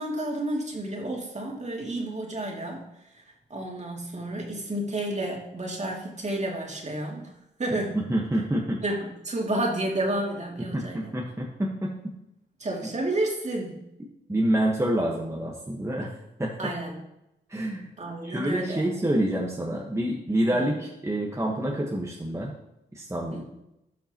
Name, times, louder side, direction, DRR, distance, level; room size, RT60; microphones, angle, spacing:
voice 1, 0.0-2.8 3.5-7.3 7.6-8.0 8.8-11.1 12.6-13.8 16.6-16.9 18.0-18.9 20.5-20.7 23.3-23.4, right 1 dB, 40° right, -1 dB, 2.5 m, -31 dB
voice 2, 7.9-8.8 10.7-11.9 14.3-16.1 16.4-16.7 17.5-17.9 18.2-22.5 22.9-23.4, right 1 dB, 15° right, -2 dB, 1.4 m, -27 dB
12.5 x 5.7 x 3.0 m, 0.86 s
supercardioid pair, 55°, 19 cm